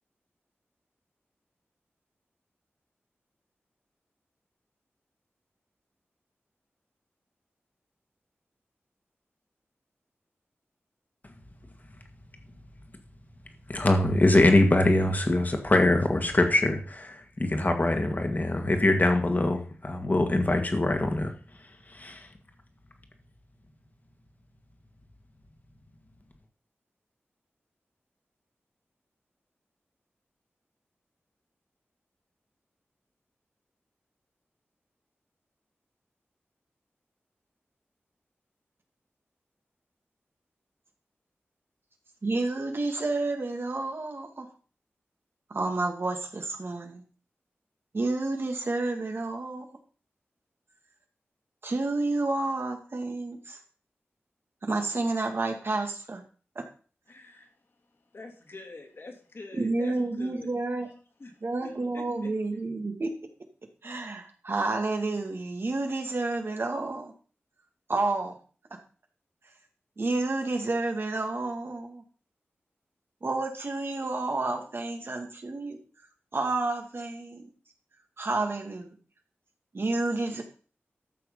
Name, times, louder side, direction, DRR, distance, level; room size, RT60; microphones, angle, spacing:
voice 1, 13.7-21.3 22.0-22.2, left 2 dB, 40° left, 5 dB, 2.1 m, -23 dB
voice 2, 42.2-44.5 45.5-47.0 47.9-49.7 51.6-53.6 54.6-56.2 56.6-56.7 59.5-60.9 61.4-63.1 63.8-67.1 67.9-68.3 70.0-72.0 73.2-75.8 76.3-77.5 78.2-78.9 79.7-80.4, right 2 dB, 60° right, 4 dB, 2.3 m, -30 dB
voice 3, 57.1-57.5 58.1-60.5 61.2-61.3 61.6-62.0, left 2 dB, 60° left, 2 dB, 3.0 m, -45 dB
12.5 x 6.3 x 5.6 m, 0.39 s
wide cardioid pair, 60°, 5 cm